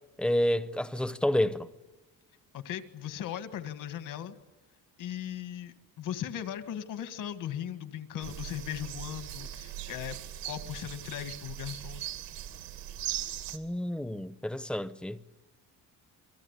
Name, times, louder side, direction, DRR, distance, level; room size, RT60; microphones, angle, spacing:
voice 1, 0.2-1.7 13.5-15.2, left 1 dB, 5° left, 0.8 m, -29 dB
voice 2, 2.5-4.4 5.0-10.2 10.5-12.1, left 10 dB, 65° left, 1.9 m, -38 dB
sound 1, 8.2-13.6, right 12 dB, 85° right, 2.4 m, -39 dB
29.0 x 23.5 x 8.3 m
cardioid pair, 170°, 34 cm